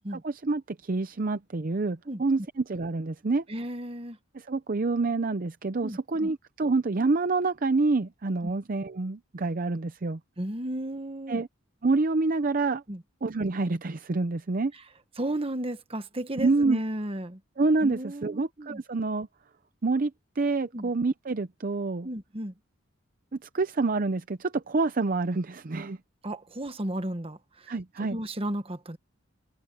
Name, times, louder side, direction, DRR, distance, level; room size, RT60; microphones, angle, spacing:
voice 1, 0.1-3.4 4.3-10.2 11.3-11.5 11.8-12.8 13.2-14.7 16.4-16.8 17.6-19.3 19.8-22.1 23.4-26.0 27.7-28.2, right 3 dB, 45° right, 0.6 m, -27 dB
voice 2, 3.5-4.2 5.8-6.3 8.4-8.5 10.4-11.4 12.9-13.0 15.2-17.4 17.8-18.8 20.7-20.9 22.0-22.5 26.2-27.7 28.1-29.0, right 1 dB, 30° right, 1.3 m, -34 dB
head